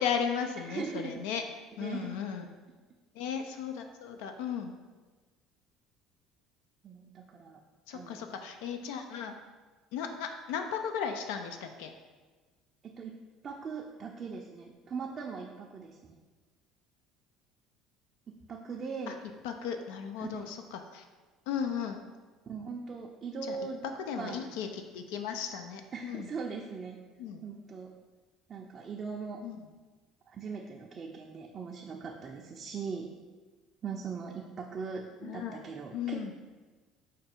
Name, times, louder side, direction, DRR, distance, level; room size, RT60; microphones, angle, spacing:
voice 1, 0.0-1.4 1.8-2.5 3.2-4.8 7.9-9.3 9.9-11.9 19.1-19.2 19.4-21.0 21.5-22.0 23.5-23.6 24.1-26.3 27.2-27.4 29.4-29.6 35.2-35.6 35.9-36.3, left 7 dB, 85° left, 6 dB, 0.3 m, -35 dB
voice 2, 0.6-1.2 1.8-2.1 6.8-7.6 7.9-8.3 12.8-13.1 13.4-16.2 18.5-19.2 20.2-20.5 22.5-23.8 24.2-24.5 25.9-27.0 27.4-27.9 28.5-29.4 30.3-33.1 33.8-36.3, right 5 dB, 35° right, 0 dB, 0.4 m, -40 dB
4.8 x 2.3 x 4.3 m, 1.3 s
supercardioid pair, 110°, 0 cm